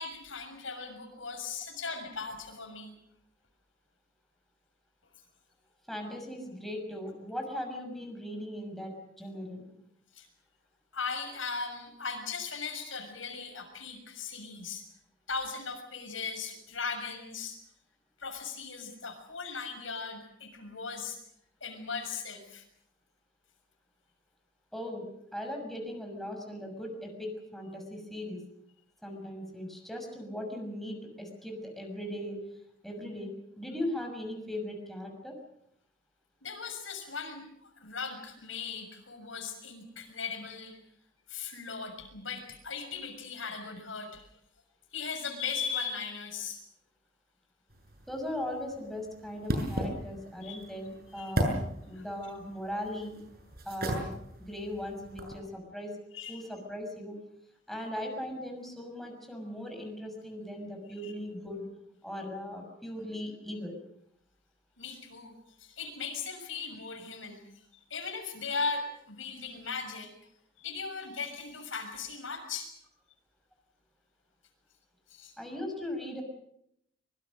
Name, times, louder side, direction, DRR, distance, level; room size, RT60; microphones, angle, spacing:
voice 1, 0.0-2.9 10.1-10.3 10.9-14.8 15.3-17.6 18.2-21.2 21.6-22.6 36.4-40.8 41.3-44.3 44.9-46.6 50.4-50.7 51.2-51.3 52.0-52.1 56.1-56.5 61.0-61.1 64.8-65.3 65.6-67.4 67.7-70.1 70.6-72.7 75.1-75.3, left 5 dB, 80° left, 5 dB, 6.7 m, -38 dB
voice 2, 5.9-9.7 24.7-28.4 29.0-32.4 32.8-35.4 48.1-51.6 51.9-53.2 53.6-54.1 54.4-56.0 56.3-57.2 57.7-61.7 62.0-63.8 75.4-76.2, left 1 dB, ahead, 2 dB, 6.3 m, -38 dB
sound 1, 47.7-55.4, right 1 dB, 50° right, 7.1 m, -37 dB
25.0 x 24.5 x 6.5 m, 0.74 s
head